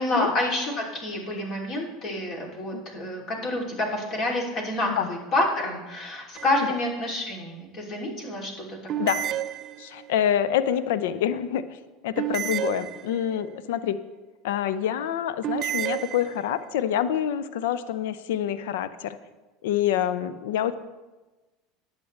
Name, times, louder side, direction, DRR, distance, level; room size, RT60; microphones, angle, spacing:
voice 1, 0.0-8.8, left 1 dB, 45° left, 0 dB, 3.0 m, -28 dB
sound 1, 6.4-6.9 8.9-10.2 12.2-13.5 15.4-16.7, right 12 dB, 45° right, 0.4 m, -31 dB
voice 2, 9.0-9.3 9.8-11.8 12.0-14.0 14.4-19.2 19.6-20.7, left 10 dB, 70° left, 15 dB, 0.6 m, -26 dB
19.0 x 8.2 x 3.3 m, 1.2 s
figure-of-eight pair, 75°, 0 cm